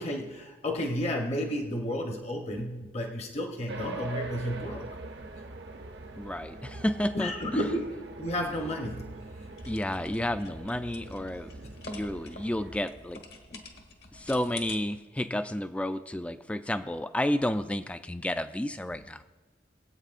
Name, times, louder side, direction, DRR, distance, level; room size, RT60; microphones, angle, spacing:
voice 1, 0.0-4.9 7.1-9.1 11.6-11.7 13.5-13.6, equal, 35° left, 2 dB, 0.8 m, -32 dB
sound 1, 3.7-12.8, right 2 dB, 65° right, 0.7 m, -42 dB
voice 2, 6.2-7.3 9.7-11.5 11.9-13.2 14.1-19.2, left 1 dB, 5° left, 10 dB, 0.3 m, -31 dB
sound 2, 9.5-14.8, left 3 dB, 65° left, 1.3 m, -47 dB
21.0 x 8.3 x 2.5 m, 1.2 s
head